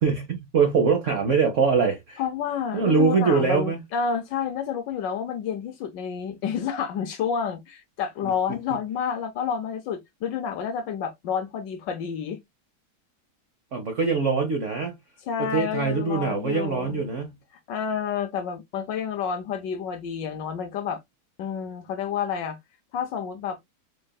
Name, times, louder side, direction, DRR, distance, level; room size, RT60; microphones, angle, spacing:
voice 1, 0.0-2.2 2.7-3.8 13.7-15.0 15.4-17.4, right 5 dB, 90° right, 0.6 m, -23 dB
voice 2, 2.2-12.4 15.3-17.0 17.7-21.0 21.4-22.6 22.9-23.6, left 7 dB, 70° left, 1.1 m, -29 dB
4.3 x 3.3 x 2.2 m
omnidirectional pair, 2.4 m